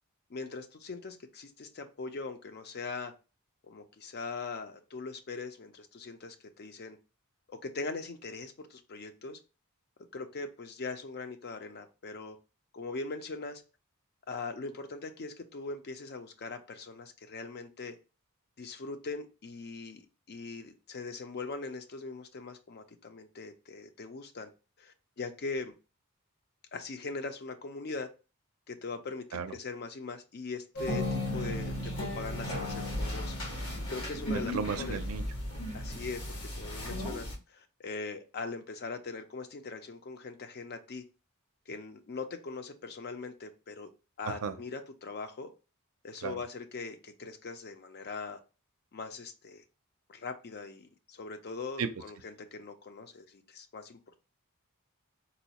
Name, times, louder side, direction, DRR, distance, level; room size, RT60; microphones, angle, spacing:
voice 1, 0.3-3.1 3.6-7.0 7.5-9.4 10.1-12.4 12.7-13.6 14.3-18.0 18.6-24.5 24.8-25.7 26.7-28.1 28.7-33.4 33.9-35.0 35.7-41.0 41.7-43.9 44.2-45.5 46.0-48.4 48.9-49.6 50.1-54.2, left 4 dB, 50° left, 0.5 m, -41 dB
sound 1, 30.8-37.4, left 1 dB, 85° left, 1.6 m, -35 dB
voice 2, 34.5-35.2 44.3-44.6 46.2-46.4 51.8-51.9, right 6 dB, 70° right, 0.4 m, -34 dB
4.1 x 2.3 x 2.8 m
head